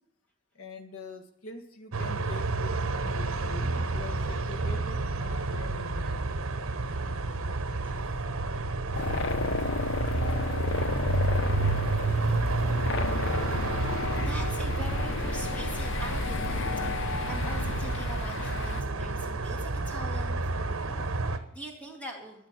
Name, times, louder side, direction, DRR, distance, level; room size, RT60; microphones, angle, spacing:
voice 1, 0.5-6.2 7.4-7.6, left 3 dB, 75° left, 6 dB, 1.7 m, -44 dB
sound 1, 1.9-21.4, right 2 dB, 70° right, 1.1 m, -30 dB
voice 2, 7.8-8.2 8.9-9.2 14.2-16.7 16.9-22.5, right 1 dB, 5° left, 1 dB, 2.3 m, -43 dB
sound 2, 8.9-18.8, left 4 dB, 55° left, 0.6 m, -33 dB
14.0 x 7.4 x 9.5 m, 0.74 s
head